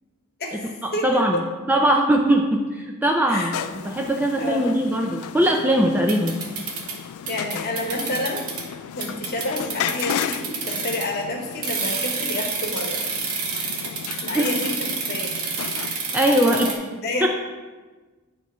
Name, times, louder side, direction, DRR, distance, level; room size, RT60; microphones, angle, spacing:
voice 1, 0.4-1.4 3.3-3.5 4.4-4.7 7.3-8.5 9.0-13.0 14.2-15.3 16.3-16.7 17.0-17.3, left 1 dB, 45° left, 2 dB, 1.0 m, -29 dB
voice 2, 1.0-1.4 1.7-3.6 3.8-6.4 14.3-14.5 16.1-16.7 17.2-17.3, right 1 dB, 10° right, 0 dB, 0.4 m, -20 dB
sound 1, 3.5-16.2, left 8 dB, 80° left, 0.3 m, -34 dB
sound 2, 6.1-7.0 7.3-8.6 9.0-11.2 11.6-16.8, right 5 dB, 75° right, 1.1 m, -29 dB
9.2 x 3.1 x 5.4 m, 1.3 s
head